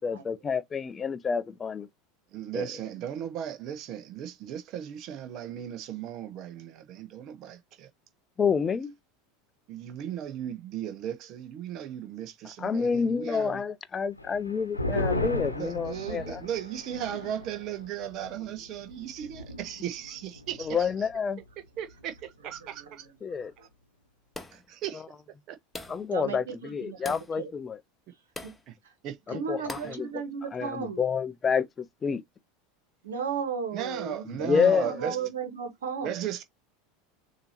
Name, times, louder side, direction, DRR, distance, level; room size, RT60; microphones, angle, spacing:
voice 1, 0.0-1.9 2.5-2.7 8.4-8.9 12.6-16.4 20.6-21.4 23.2-23.5 24.9-25.0 25.9-27.8 29.3-30.2 30.5-32.2 34.3-35.1, left 6 dB, 25° left, 0.5 m, -29 dB
voice 2, 2.3-7.9 9.7-13.6 15.6-20.9 21.8-23.1 24.5-25.0 25.5-25.6 28.7-28.8 29.0-29.9 33.7-35.2 36.0-36.4, right 10 dB, 45° right, 0.9 m, -36 dB
sound 1, 14.2-21.1 21.4-21.5 21.9-22.4, left 1 dB, 90° left, 0.9 m, -36 dB
voice 3, 22.7-23.3 26.1-27.5 28.4-28.5 29.3-31.0 33.0-36.2, right 6 dB, 70° right, 1.5 m, -35 dB
sound 2, 24.3-24.7 25.7-26.1 27.0-27.3 28.4-28.6 29.7-30.0, left 2 dB, 5° left, 0.8 m, -41 dB
6.6 x 2.8 x 2.8 m
figure-of-eight pair, 80°, 0 cm